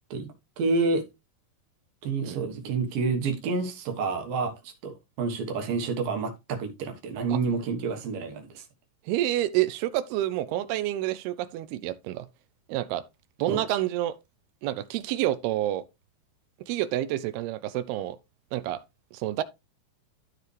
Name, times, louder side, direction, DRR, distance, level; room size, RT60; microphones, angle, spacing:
voice 1, 0.6-1.0 2.0-8.6 13.5-13.6, right 4 dB, 65° right, 2.8 m, -29 dB
voice 2, 9.1-12.3 12.7-13.0 13.4-14.2 14.6-15.8 16.7-18.2 18.5-18.8 19.1-19.4, right 14 dB, 80° right, 2.4 m, -28 dB
13.5 x 4.7 x 3.2 m
omnidirectional pair, 4.7 m